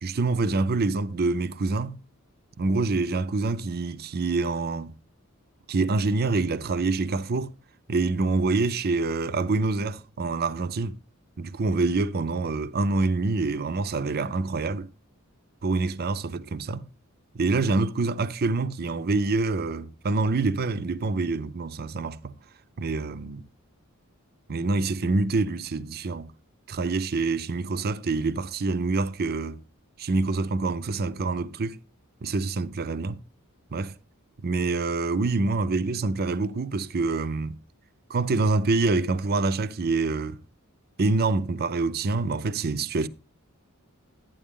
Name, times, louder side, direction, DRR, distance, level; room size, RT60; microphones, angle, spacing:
voice 1, 0.0-2.0 2.6-4.9 5.7-7.5 7.9-11.0 11.4-14.9 15.6-16.9 17.3-22.3 22.8-23.4 24.5-26.3 26.7-29.6 30.0-31.8 32.2-33.2 33.7-33.9 34.4-37.6 38.1-40.4 41.0-43.1, right 3 dB, 45° right, 0.6 m, -26 dB
12.5 x 9.2 x 3.7 m
head